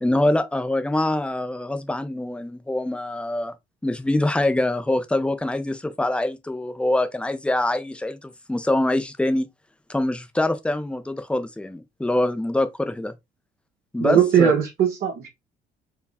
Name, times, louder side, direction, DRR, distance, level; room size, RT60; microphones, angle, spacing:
voice 1, 0.0-3.5 3.8-9.5 9.9-13.2 13.9-14.5, left 1 dB, 5° left, 0.6 m, -24 dB
voice 2, 14.0-15.3, right 9 dB, 65° right, 1.3 m, -19 dB
4.7 x 2.3 x 3.5 m
cardioid pair, 110°, 17 cm